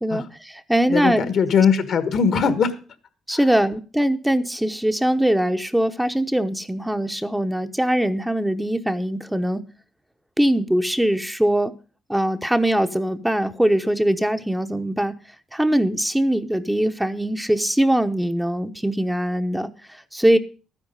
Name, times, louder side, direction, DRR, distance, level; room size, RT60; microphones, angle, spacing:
voice 1, 0.0-1.3 3.3-9.6 10.4-11.7 12.1-15.1 15.5-20.4, right 1 dB, 5° right, 8 dB, 0.8 m, -22 dB
voice 2, 0.9-2.8 3.3-3.4, left 6 dB, 65° left, 11 dB, 1.5 m, -20 dB
12.0 x 9.8 x 5.4 m, 0.38 s
cardioid pair, 90°, 0 cm